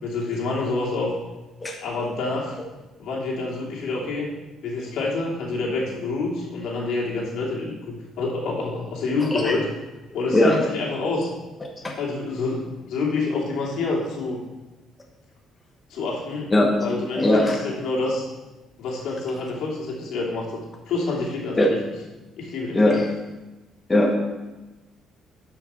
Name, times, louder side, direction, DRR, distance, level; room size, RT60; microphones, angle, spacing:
voice 1, 0.0-1.1 1.8-2.6 3.0-4.3 4.6-9.6 10.1-11.3 12.0-14.4 15.9-18.2 18.8-21.8 22.4-23.0, left 3 dB, 75° left, -3 dB, 2.8 m, -27 dB
voice 2, 9.2-9.6 10.3-10.6 11.8-11.9 16.5-16.7 17.2-17.5 21.6-21.7 22.7-23.1 23.9-24.1, left 1 dB, 15° left, 0 dB, 1.2 m, -19 dB
12.0 x 5.8 x 4.4 m, 1.1 s
cardioid pair, 130°, 0 cm